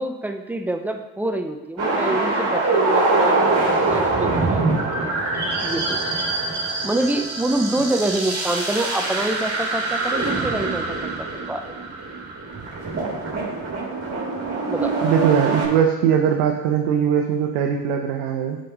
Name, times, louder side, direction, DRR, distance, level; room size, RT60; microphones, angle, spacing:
voice 1, 0.0-3.4 3.8-5.1 5.6-6.0 6.8-11.6 14.7-15.0, right 1 dB, 5° right, 6 dB, 0.5 m, -26 dB
sound 1, 1.8-15.7, right 3 dB, 30° right, 2.2 m, -24 dB
voice 2, 15.0-18.6, right 8 dB, 70° right, 2 dB, 0.8 m, -20 dB
7.6 x 5.2 x 3.0 m, 1.1 s
hypercardioid pair, 70°, 49 cm